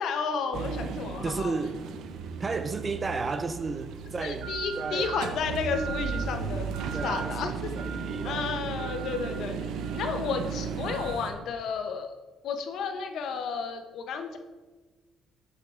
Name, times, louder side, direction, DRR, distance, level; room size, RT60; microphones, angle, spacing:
voice 1, 0.0-1.5 4.2-6.7 7.0-7.7 8.2-9.5 9.9-12.1 12.4-14.4, left 5 dB, 65° left, 0.7 m, -32 dB
sound 1, 0.5-11.3, right 6 dB, 75° right, 0.6 m, -35 dB
voice 2, 1.2-1.8 2.4-5.2 6.9-8.5, right 4 dB, 25° right, 0.3 m, -33 dB
8.4 x 6.6 x 2.5 m
cardioid pair, 140°, 0 cm